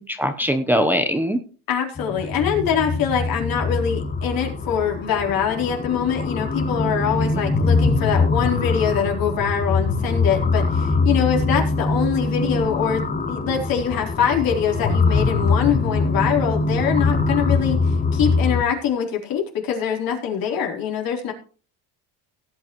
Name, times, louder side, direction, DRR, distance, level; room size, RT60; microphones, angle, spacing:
voice 1, 0.0-1.4, equal, 5° right, 6 dB, 0.9 m, -21 dB
voice 2, 1.7-21.3, left 8 dB, 55° left, 0 dB, 3.9 m, -24 dB
sound 1, 2.0-18.6, left 3 dB, 20° left, 1.3 m, -23 dB
17.5 x 9.4 x 3.1 m, 0.39 s
cardioid pair, 120°, 40 cm